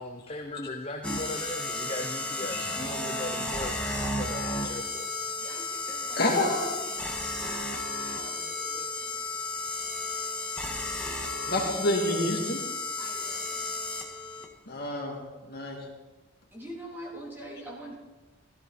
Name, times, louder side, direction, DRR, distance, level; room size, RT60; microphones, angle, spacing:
voice 1, 0.0-5.1, left 2 dB, 25° left, 3 dB, 0.8 m, -38 dB
sound 1, 1.0-14.4, left 2 dB, 5° left, 1.6 m, -33 dB
voice 2, 5.4-6.2 6.5-7.1 7.4-9.4 13.0-13.7 16.5-17.9, equal, 10° right, -4 dB, 3.4 m, -45 dB
voice 3, 6.2-6.8 11.5-12.6 13.0-13.1 14.7-15.2 15.5-15.8, left 1 dB, 45° left, -1 dB, 2.8 m, -28 dB
16.5 x 15.0 x 4.3 m, 1.2 s
head